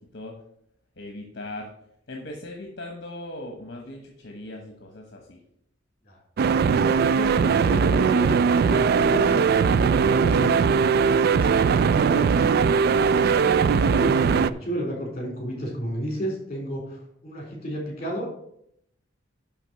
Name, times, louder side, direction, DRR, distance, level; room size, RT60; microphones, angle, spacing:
voice 1, 1.0-1.7 2.1-5.4, left 1 dB, 60° left, 2 dB, 1.1 m, -39 dB
sound 1, 6.4-14.5, right 5 dB, 55° right, 0.3 m, -20 dB
voice 2, 6.8-13.0 13.4-18.3, equal, 35° left, -1 dB, 3.8 m, -32 dB
10.5 x 3.7 x 6.3 m, 0.73 s
head